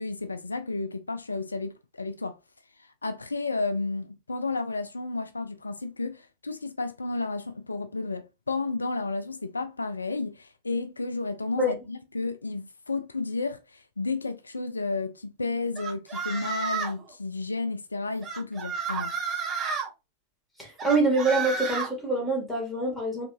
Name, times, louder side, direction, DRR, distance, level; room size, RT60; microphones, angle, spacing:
voice 1, 0.0-2.4 2.8-19.1, left 3 dB, 80° left, 0.4 m, -32 dB
sound 1, 15.8-17.0 18.2-19.9 20.8-21.9, right 5 dB, 20° right, 1.5 m, -31 dB
voice 2, 20.6-23.3, right 2 dB, 5° left, 2.6 m, -25 dB
5.2 x 3.5 x 2.7 m
figure-of-eight pair, 90°, 0 cm